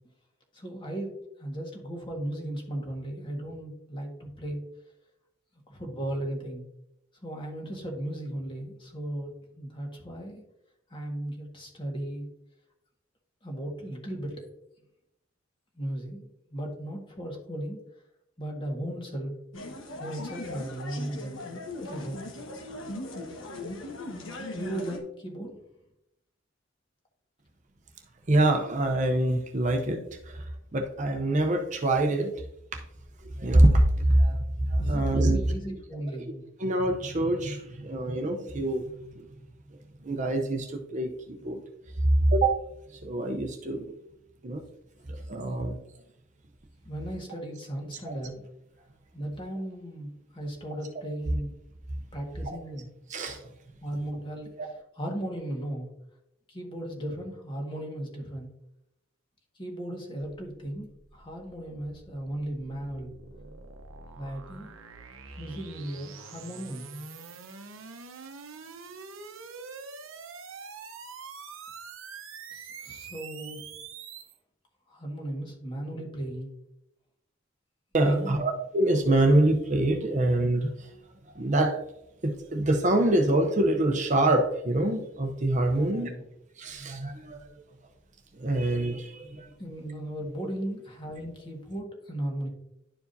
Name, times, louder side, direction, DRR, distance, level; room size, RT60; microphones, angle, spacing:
voice 1, 0.5-1.1 1.4-4.6 5.7-6.7 7.2-10.4 10.9-12.3 13.4-14.4 15.8-17.8 18.4-19.4 20.0-21.3 21.8-22.2 24.5-25.6 34.8-36.5 46.8-48.4 49.1-51.5 52.1-52.9 53.8-54.5 55.0-55.9 56.5-58.5 59.6-60.9 61.1-63.1 64.1-64.7 65.4-66.9 72.5-73.6 74.9-76.5 78.0-78.4 85.7-86.3 89.6-92.5, right 1 dB, 25° left, 0 dB, 1.6 m, -36 dB
sound 1, 19.5-25.0, left 2 dB, 75° left, 1.3 m, -39 dB
voice 2, 28.3-30.0 30.2-32.3 32.7-32.8 33.4-35.4 36.6-39.3 40.0-41.6 42.0-42.6 42.9-43.9 44.4-44.6 45.1-45.8 48.1-48.2 52.5-52.6 53.1-53.4 54.6-54.7 77.9-80.9 81.3-81.8 82.2-86.1 86.6-87.4 88.3-89.5, right 1 dB, 35° right, 4 dB, 0.7 m, -25 dB
sound 2, 60.3-74.4, right 5 dB, 90° right, 0.8 m, -45 dB
11.5 x 4.8 x 2.7 m, 0.82 s
head